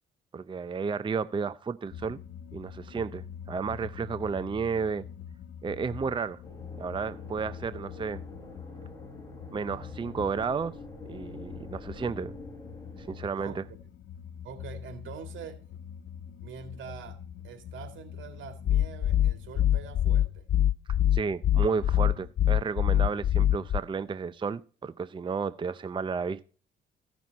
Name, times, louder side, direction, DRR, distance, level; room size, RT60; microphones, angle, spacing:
voice 1, 0.3-2.2 2.5-5.0 5.6-6.4 6.8-8.2 9.5-10.7 11.1-12.3 13.0-13.6 21.1-26.4, right 5 dB, 25° right, 0.5 m, -32 dB
sound 1, 1.9-20.1, left 8 dB, 65° left, 1.2 m, -45 dB
sound 2, 6.4-13.2, left 1 dB, 20° left, 3.6 m, -46 dB
voice 2, 13.4-13.8 14.4-15.6 16.4-20.5 22.1-22.2, right 6 dB, 75° right, 2.2 m, -45 dB
sound 3, 18.7-23.8, left 11 dB, 45° left, 0.4 m, -23 dB
15.0 x 6.1 x 4.1 m
cardioid pair, 90°, 20 cm